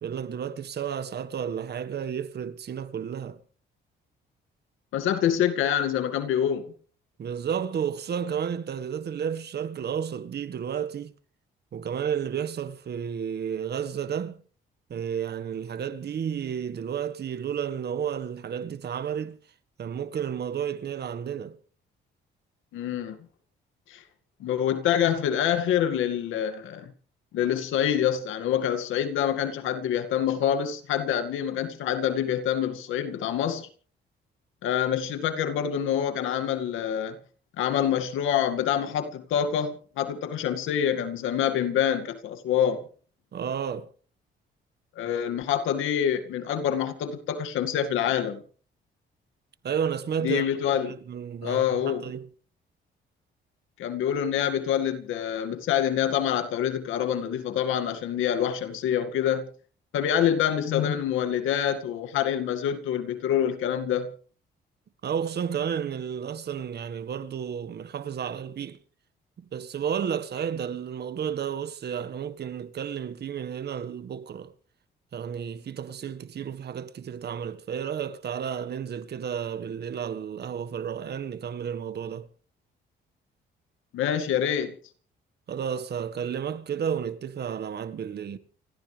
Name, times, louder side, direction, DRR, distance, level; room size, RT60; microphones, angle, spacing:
voice 1, 0.0-3.4 7.2-11.1 11.7-14.4 14.9-19.4 19.8-21.6 43.3-43.9 49.6-50.4 50.8-52.3 65.0-68.8 69.4-74.5 75.1-82.3 85.5-88.4, right 8 dB, 55° right, 1.6 m, -32 dB
voice 2, 4.9-6.6 22.7-23.2 23.9-24.0 24.4-26.9 27.3-33.7 34.6-37.2 37.6-42.8 45.0-48.4 50.2-50.9 51.4-52.1 53.8-59.5 59.9-64.1 83.9-84.7, left 9 dB, 85° left, 2.2 m, -26 dB
29.0 x 14.0 x 3.4 m
cardioid pair, 90°, 20 cm